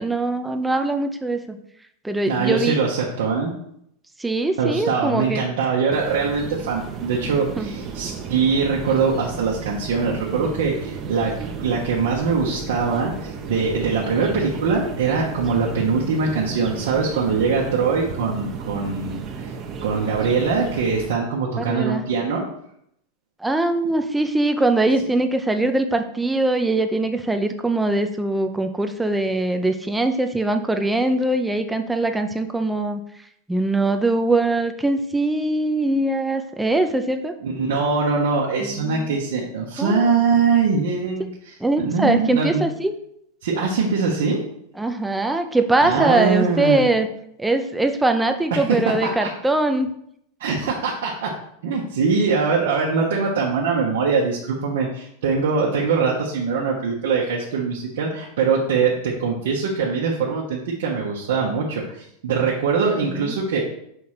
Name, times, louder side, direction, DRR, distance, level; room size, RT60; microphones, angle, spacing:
voice 1, 0.0-1.6 2.0-2.8 4.2-5.4 7.6-7.7 21.6-22.0 23.4-33.0 33.5-37.3 38.6-39.2 39.8-40.0 41.6-42.9 44.8-47.1 47.4-49.9 63.1-63.4, right 2 dB, 5° right, 7 dB, 0.5 m, -22 dB
voice 2, 2.3-3.5 4.6-11.3 11.6-19.5 19.8-22.4 37.4-41.3 41.8-42.6 43.4-44.4 45.8-46.9 48.7-49.3 50.4-51.3 51.6-63.6, right 5 dB, 80° right, -3 dB, 1.1 m, -22 dB
sound 1, 5.9-21.1, right 5 dB, 35° right, 0.8 m, -33 dB
5.6 x 3.2 x 5.7 m, 0.73 s
supercardioid pair, 125°, 0 cm